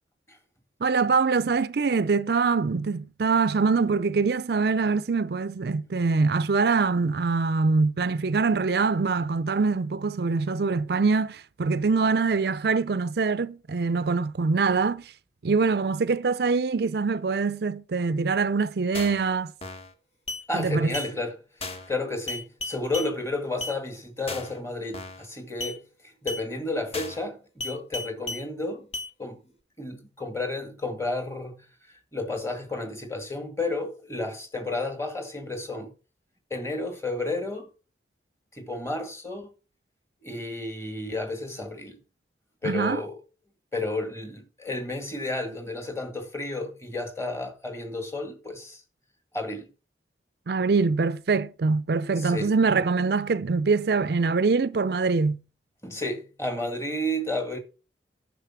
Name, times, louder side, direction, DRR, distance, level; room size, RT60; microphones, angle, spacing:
voice 1, 0.8-15.1 15.4-19.5 20.5-20.9 42.6-43.0 50.5-55.4, right 4 dB, 60° right, 0.5 m, -24 dB
sound 1, 18.9-19.2 19.6-19.9 20.3-20.4 20.9-21.1 21.6-21.9 22.3-23.1 23.6-23.8 24.3-24.6 24.9-25.2 25.6-25.8 26.3-26.4 26.9-27.2 27.6-28.4 28.9-29.1, left 2 dB, 35° left, 1.5 m, -34 dB
voice 2, 20.5-21.3 21.6-25.8 26.2-28.9 29.2-29.4 29.8-31.6 32.1-35.9 36.5-37.7 38.5-39.5 40.2-42.0 42.6-43.2 43.7-48.8 49.3-49.6 52.2-52.5 55.8-57.6, left 2 dB, 15° left, 1.9 m, -32 dB
10.0 x 6.5 x 5.9 m
head